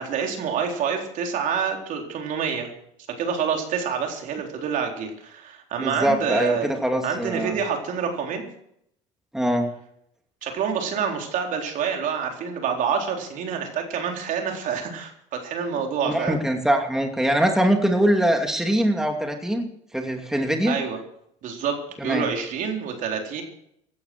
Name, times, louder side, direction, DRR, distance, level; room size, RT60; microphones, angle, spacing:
voice 1, 0.0-2.7 3.2-6.8 7.0-8.4 10.4-16.4 20.7-21.0 21.4-23.4, right 6 dB, 60° right, 3 dB, 3.9 m, -27 dB
voice 2, 5.8-7.6 9.3-9.7 16.0-19.7 19.9-20.8 22.0-22.3, right 1 dB, 5° right, 4 dB, 2.5 m, -23 dB
16.5 x 11.5 x 6.2 m, 0.73 s
supercardioid pair, 85°, 15 cm